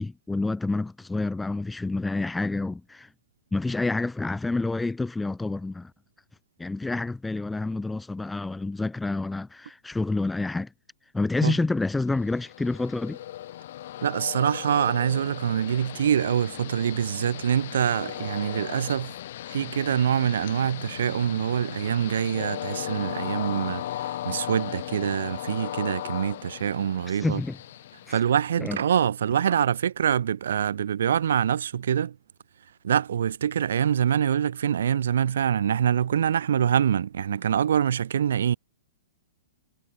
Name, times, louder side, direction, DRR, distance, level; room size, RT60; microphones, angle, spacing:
voice 1, 0.0-3.1 3.5-5.9 6.6-10.7 11.1-13.2 27.2-27.6 28.1-28.2 28.6-28.8, left 3 dB, 5° left, 0.8 m, -28 dB
Train, 12.0-28.8, left 13 dB, 60° left, 1.1 m, -37 dB
voice 2, 14.0-19.1 19.5-27.4 28.1-32.2 32.8-38.6, right 9 dB, 70° right, 0.9 m, -25 dB
hypercardioid pair, 120°, 0 cm